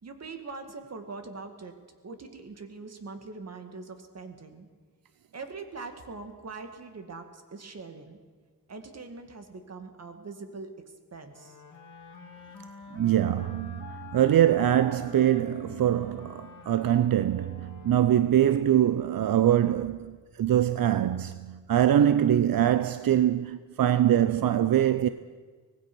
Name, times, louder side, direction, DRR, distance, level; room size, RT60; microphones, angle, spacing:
voice 1, 0.0-1.7 2.0-4.7 5.3-8.2 8.7-10.7 11.1-11.6, right 4 dB, 45° right, 2.1 m, -42 dB
sound 1, 11.3-18.8, left 6 dB, 55° left, 2.6 m, -47 dB
voice 2, 12.9-25.1, right 11 dB, 80° right, 0.6 m, -23 dB
24.5 x 18.5 x 6.2 m
wide cardioid pair, 180°, 35 cm